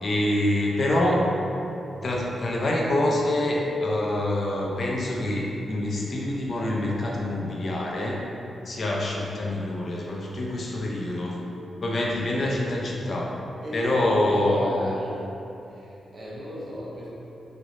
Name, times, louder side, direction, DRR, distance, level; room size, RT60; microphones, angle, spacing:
voice 1, 0.0-1.2 2.0-8.2 8.7-11.4 11.8-13.3 13.7-14.8, left 1 dB, 60° left, -3 dB, 0.5 m, -26 dB
voice 2, 13.6-15.1 15.8-15.9 16.1-17.1, equal, 60° right, -7 dB, 0.8 m, -34 dB
3.2 x 3.0 x 2.6 m, 2.9 s
cardioid pair, 65°, 0 cm